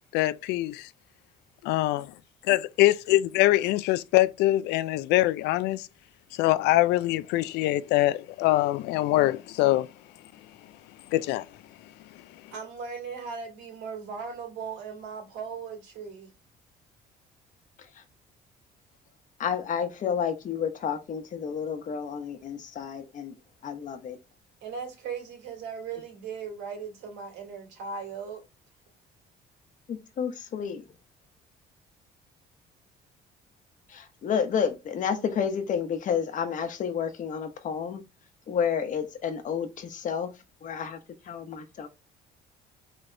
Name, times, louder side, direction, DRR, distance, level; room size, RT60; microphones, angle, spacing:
voice 1, 0.1-0.9 1.6-2.0 2.5-5.9 6.4-9.9 11.1-11.5, left 16 dB, 85° left, 0.4 m, -23 dB
voice 2, 12.5-16.3 24.6-28.4, right 5 dB, 90° right, 2.3 m, -38 dB
voice 3, 19.4-23.3 23.6-24.2 29.9-30.8 33.9-38.0 38.5-40.3 40.6-41.0 41.3-41.9, left 7 dB, 50° left, 1.0 m, -30 dB
4.0 x 3.4 x 3.3 m
cardioid pair, 110°, 17 cm